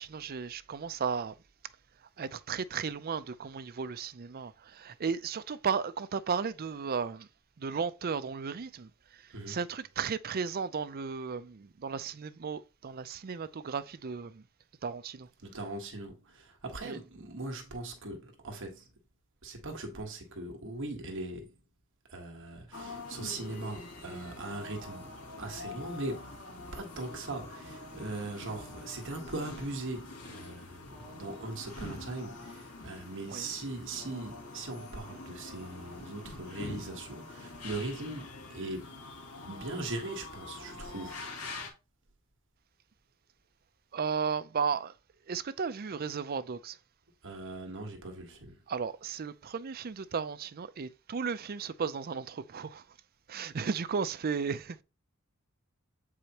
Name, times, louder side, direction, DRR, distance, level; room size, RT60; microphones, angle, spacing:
voice 1, 0.0-1.3 2.2-7.3 7.6-8.9 9.5-14.4 14.8-15.3 16.8-17.0 33.3-33.5 43.9-44.9 45.3-46.8 48.7-52.8 53.3-54.8, right 6 dB, 45° right, 0.5 m, -34 dB
voice 2, 15.4-18.9 19.4-21.5 22.1-25.1 25.4-26.3 26.7-39.1 39.4-41.3 47.2-48.6, right 2 dB, 60° right, 1.3 m, -40 dB
sound 1, 22.7-41.7, left 3 dB, 85° left, 2.6 m, -45 dB
7.9 x 4.9 x 2.9 m
head